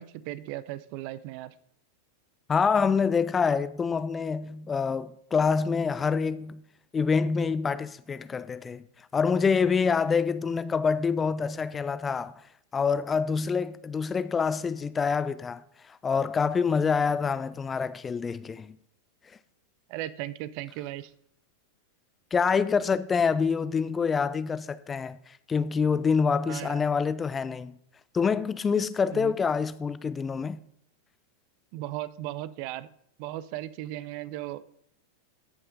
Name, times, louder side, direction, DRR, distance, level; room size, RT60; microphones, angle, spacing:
voice 1, 0.0-1.5 19.9-21.1 26.5-26.8 29.1-29.3 31.7-32.9 33.2-34.6, right 14 dB, 45° right, 0.5 m, -36 dB
voice 2, 2.5-6.6 6.9-8.8 9.1-12.3 12.7-15.6 15.9-18.7 22.3-27.7 28.1-30.6, left 5 dB, 20° left, 0.4 m, -26 dB
14.0 x 5.6 x 4.1 m
figure-of-eight pair, 90°, 0 cm